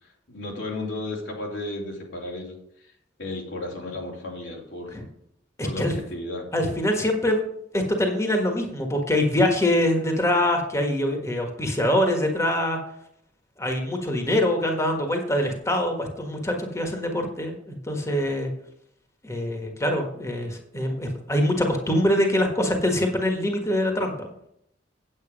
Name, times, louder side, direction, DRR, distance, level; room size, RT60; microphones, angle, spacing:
voice 1, 0.0-2.9 3.2-5.0 5.6-6.5, left 2 dB, 90° left, -1 dB, 2.9 m, -34 dB
voice 2, 5.6-5.9 6.5-7.4 7.7-12.8 13.6-18.5 19.2-24.3, left 1 dB, 15° left, 3 dB, 1.4 m, -24 dB
8.9 x 8.1 x 5.1 m, 0.74 s
head